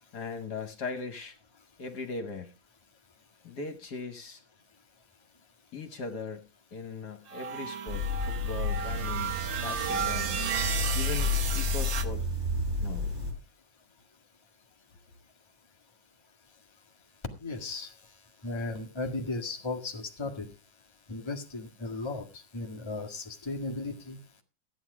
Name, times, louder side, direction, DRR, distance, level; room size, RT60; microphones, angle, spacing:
voice 1, 0.1-1.4 1.8-2.5 3.4-4.4 5.7-10.4 10.9-12.3 12.8-13.1, left 4 dB, 60° left, 8 dB, 1.9 m, -39 dB
sound 1, 7.3-12.1, right 7 dB, 80° right, 1.9 m, -33 dB
sound 2, 7.9-13.3, left 3 dB, 25° right, 4.0 m, -31 dB
voice 2, 17.4-17.9 18.4-20.5 21.1-24.2, left 2 dB, 15° left, 3 dB, 1.5 m, -36 dB
14.0 x 9.0 x 4.8 m, 0.32 s
omnidirectional pair, 2.1 m